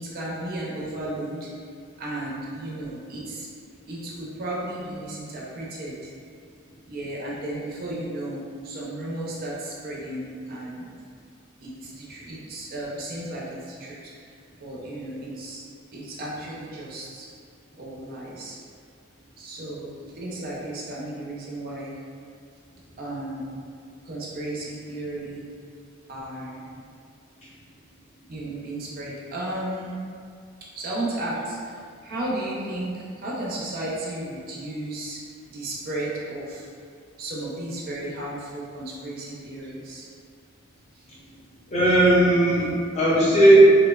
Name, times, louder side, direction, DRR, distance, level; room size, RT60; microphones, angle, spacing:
voice 1, 0.0-1.5 2.0-3.5 3.9-6.1 6.9-10.9 11.6-15.6 15.9-17.3 17.8-18.6 19.4-22.0 23.0-23.5 24.0-25.4 26.1-26.6 28.3-29.9 30.8-36.7 37.2-40.0 41.0-41.1, right 1 dB, 45° right, -5 dB, 0.4 m, -34 dB
voice 2, 41.7-43.7, right 1 dB, 30° left, -8 dB, 0.5 m, -16 dB
2.7 x 2.0 x 2.2 m, 2.2 s
head